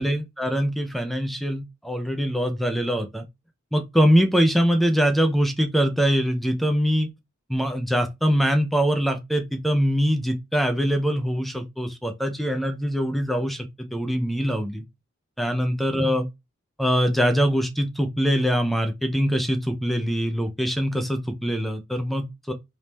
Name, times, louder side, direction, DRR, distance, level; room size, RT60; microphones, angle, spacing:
voice 1, 0.0-3.2 3.7-7.1 7.5-14.8 15.4-16.3 16.8-22.5, equal, ahead, 0.5 m, -23 dB
3.5 x 2.7 x 2.9 m
head